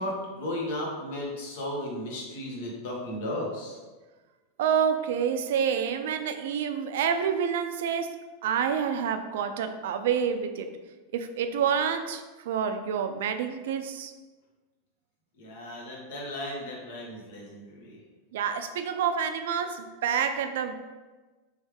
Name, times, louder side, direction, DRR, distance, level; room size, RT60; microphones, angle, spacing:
voice 1, 0.0-3.8 15.4-18.0, left 1 dB, 70° left, -2 dB, 1.2 m, -35 dB
voice 2, 4.6-8.1 8.4-10.7 11.1-14.1 18.3-20.7, right 7 dB, 70° right, 8 dB, 0.4 m, -28 dB
3.5 x 3.2 x 3.4 m, 1.3 s
hypercardioid pair, 100°, 0 cm